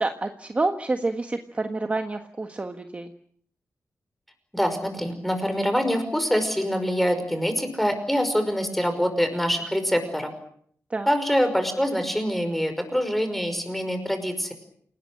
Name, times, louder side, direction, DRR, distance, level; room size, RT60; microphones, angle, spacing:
voice 1, 0.0-3.1 10.9-11.1, right 2 dB, 25° right, 6 dB, 1.4 m, -28 dB
voice 2, 4.5-10.3 11.1-14.5, equal, 5° left, 8 dB, 5.5 m, -25 dB
28.5 x 19.0 x 8.8 m, 0.64 s
wide cardioid pair, 165°, 6 cm